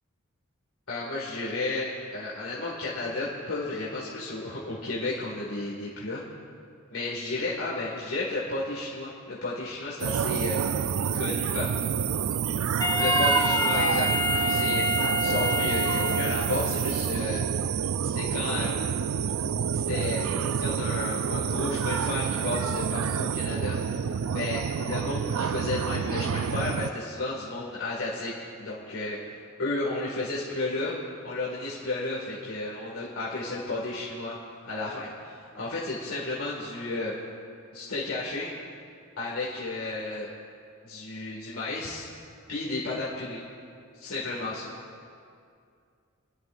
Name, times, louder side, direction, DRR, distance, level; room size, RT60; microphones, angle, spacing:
voice 1, 0.9-6.2 6.9-10.7 11.1-11.7 13.0-17.4 18.0-18.9 19.7-20.2 20.6-24.0 24.3-31.0 31.2-34.4 34.6-37.3 37.7-38.5 39.2-40.3 40.8-42.1 42.5-43.4 43.9-44.7, left 2 dB, 85° left, -6 dB, 2.0 m, -33 dB
sound 1, 10.0-26.9, right 7 dB, 90° right, 0.4 m, -28 dB
Wind instrument woodwind instrument, 12.8-16.7, left 1 dB, 20° left, 2.0 m, -27 dB
26.0 x 11.0 x 2.6 m, 2.4 s
head